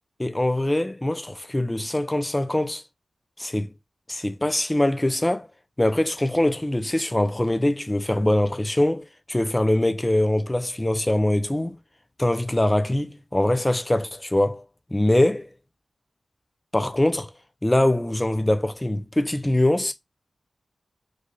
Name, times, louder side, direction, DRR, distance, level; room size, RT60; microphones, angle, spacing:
voice 1, 0.2-2.8 3.4-3.7 4.1-5.5 5.8-11.8 12.2-14.6 14.9-15.5 16.7-17.3 17.6-19.9, left 1 dB, 20° left, 0.6 m, -23 dB
3.3 x 2.5 x 3.8 m
cardioid pair, 60°, 0 cm